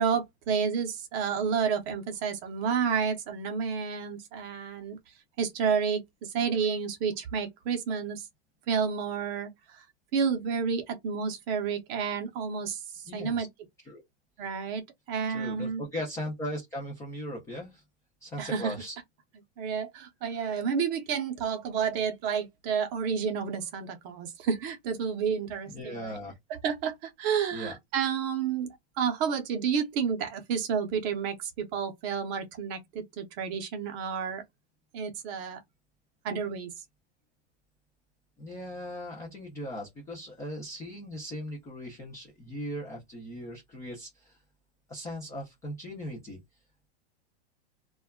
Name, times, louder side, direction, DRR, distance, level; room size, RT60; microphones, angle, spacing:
voice 1, 0.0-5.0 5.4-8.3 8.7-9.8 10.1-13.5 14.4-15.8 18.4-18.7 19.6-26.2 26.5-28.7 29.0-34.4 34.9-35.6 36.2-36.7, right 6 dB, 30° right, 0.6 m, -30 dB
voice 2, 13.1-13.5 13.9-14.0 15.3-17.8 18.2-19.0 20.3-20.6 25.7-26.3 27.5-27.8 38.4-44.4 44.9-46.4, equal, 10° left, 0.3 m, -38 dB
2.2 x 2.1 x 3.4 m
supercardioid pair, 145°, 32 cm